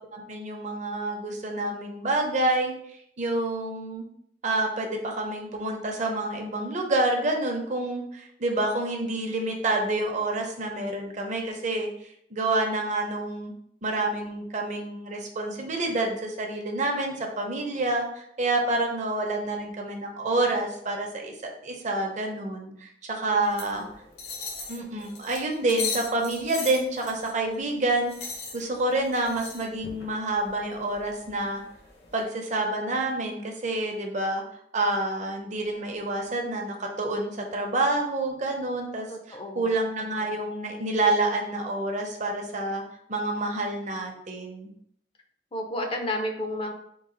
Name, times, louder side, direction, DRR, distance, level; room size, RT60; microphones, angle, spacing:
voice 1, 0.1-2.7 3.2-4.1 4.4-11.9 12.3-13.5 13.8-21.3 21.6-23.8 24.7-28.1 28.5-31.6 32.1-34.4 34.7-42.8 43.1-44.7, right 2 dB, 45° right, 1 dB, 0.7 m, -28 dB
voice 2, 23.3-23.9 39.1-39.7 45.5-46.7, left 1 dB, 30° left, 3 dB, 0.5 m, -32 dB
sound 1, 23.4-32.2, left 4 dB, 65° left, 1.0 m, -39 dB
3.8 x 2.4 x 3.8 m, 0.70 s
head